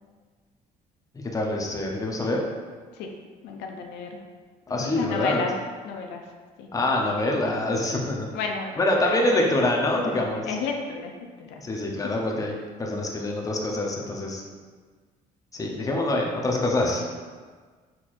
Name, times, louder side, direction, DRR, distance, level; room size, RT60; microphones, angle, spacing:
voice 1, 1.3-2.4 4.7-5.4 6.7-8.3 8.8-10.5 11.6-14.4 15.5-17.1, left 1 dB, 20° left, 0 dB, 0.7 m, -25 dB
voice 2, 3.4-4.2 4.7-5.5 5.8-6.2 6.6-6.7 8.3-8.8 9.0-9.3 10.5-11.1 11.4-11.6, left 5 dB, 90° left, 2 dB, 0.5 m, -32 dB
4.3 x 4.3 x 2.5 m, 1.5 s
cardioid pair, 110°, 17 cm